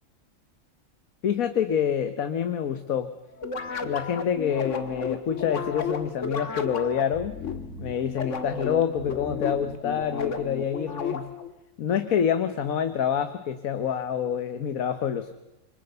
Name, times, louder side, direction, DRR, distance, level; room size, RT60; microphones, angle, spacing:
voice 1, 1.2-3.1 3.8-7.4 7.8-11.4 11.8-15.3, left 8 dB, 90° left, 10 dB, 1.5 m, -27 dB
sound 1, 3.4-11.5, left 5 dB, 65° left, 1.9 m, -33 dB
27.0 x 24.5 x 6.7 m, 0.98 s
omnidirectional pair, 1.4 m